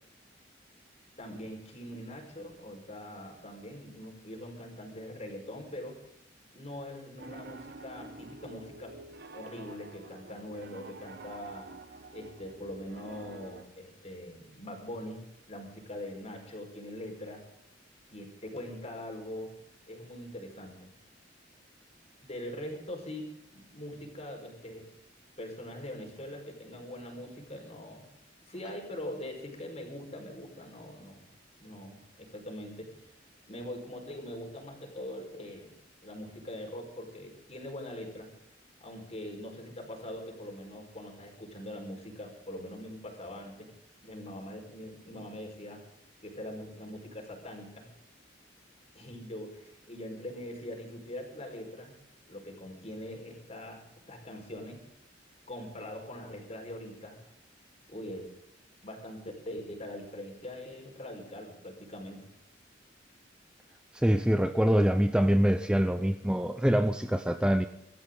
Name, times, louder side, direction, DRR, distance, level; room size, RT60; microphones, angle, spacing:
voice 1, 1.2-6.0 6.5-9.0 9.3-11.7 12.1-17.4 18.1-19.5 19.9-20.9 22.2-24.8 25.4-28.1 28.5-31.3 31.6-32.9 33.5-35.7 36.0-38.3 38.8-43.7 44.0-45.8 46.2-47.9 48.9-51.9 52.3-54.8 55.5-57.2 57.9-58.3 58.8-62.3, left 1 dB, 35° left, 2 dB, 4.9 m, -42 dB
Piano, 7.2-13.6, right 3 dB, 60° right, 1.1 m, -48 dB
voice 2, 63.9-67.7, equal, 5° right, 9 dB, 0.6 m, -25 dB
25.5 x 13.5 x 3.9 m, 0.83 s
head